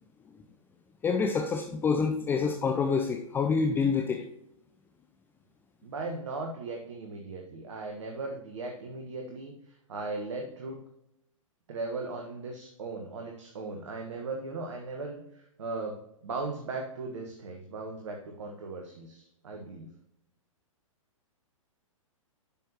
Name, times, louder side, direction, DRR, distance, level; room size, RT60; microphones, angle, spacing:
voice 1, 1.0-4.3, left 5 dB, 10° left, 5 dB, 0.5 m, -27 dB
voice 2, 5.8-10.8 11.7-19.9, right 3 dB, 60° right, 2 dB, 1.3 m, -38 dB
10.5 x 6.5 x 2.9 m, 0.78 s
figure-of-eight pair, 110°, 17 cm